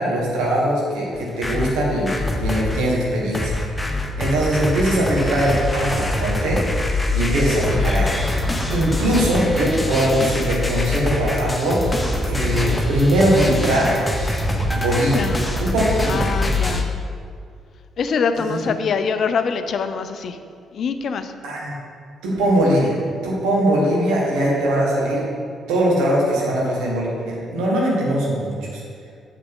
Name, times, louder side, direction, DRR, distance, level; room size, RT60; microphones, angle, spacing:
voice 1, 0.0-3.6 3.8-6.6 7.1-8.4 8.7-11.9 12.2-13.9 14.7-15.3 15.6-16.3 18.4-18.6 21.4-21.8 22.2-23.0 23.2-25.2 25.7-28.8, right 1 dB, 65° right, -4 dB, 1.7 m, -21 dB
sound 1, 1.1-2.8 3.3-16.8, left 1 dB, 10° left, 0.9 m, -24 dB
voice 2, 15.1-15.5 16.1-16.9 18.0-20.4 20.7-21.3, left 5 dB, 50° left, 9 dB, 0.5 m, -24 dB
7.6 x 6.7 x 3.8 m, 2.3 s
figure-of-eight pair, 40°, 0 cm